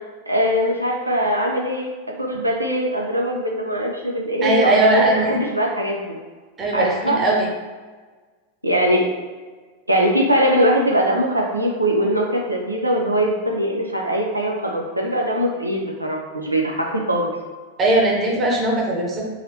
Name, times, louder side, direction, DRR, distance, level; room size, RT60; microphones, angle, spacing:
voice 1, 0.3-1.9 2.2-6.2 6.7-7.2 8.6-9.0 9.9-17.3, equal, 85° right, -1 dB, 0.5 m, -21 dB
voice 2, 4.4-5.3 6.6-7.5 17.8-19.2, right 2 dB, 25° right, -2 dB, 0.9 m, -19 dB
3.9 x 2.9 x 2.7 m, 1.4 s
figure-of-eight pair, 90°, 0 cm